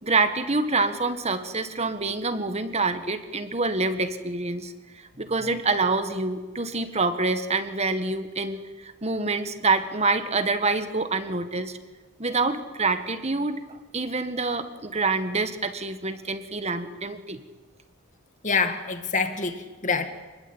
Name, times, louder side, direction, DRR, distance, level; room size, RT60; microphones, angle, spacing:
voice 1, 0.0-4.7 5.2-11.8 12.2-17.4, right 3 dB, 30° right, 9 dB, 1.7 m, -26 dB
voice 2, 18.4-20.1, left 4 dB, 35° left, 7 dB, 2.1 m, -26 dB
28.5 x 21.0 x 8.9 m, 1.3 s
head